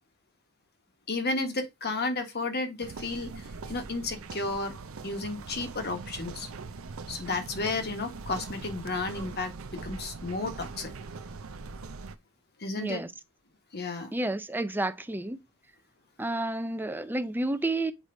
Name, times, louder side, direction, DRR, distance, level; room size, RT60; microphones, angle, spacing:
voice 1, 1.1-4.7 5.0-6.5 7.1-10.9 12.6-13.0 13.7-14.1, left 3 dB, 50° left, 1.4 m, -32 dB
sound 1, 2.8-12.2, right 4 dB, 70° right, 0.6 m, -42 dB
voice 2, 12.8-13.1 14.1-15.4 16.2-17.9, right 2 dB, 10° right, 0.5 m, -30 dB
7.4 x 4.8 x 2.7 m
head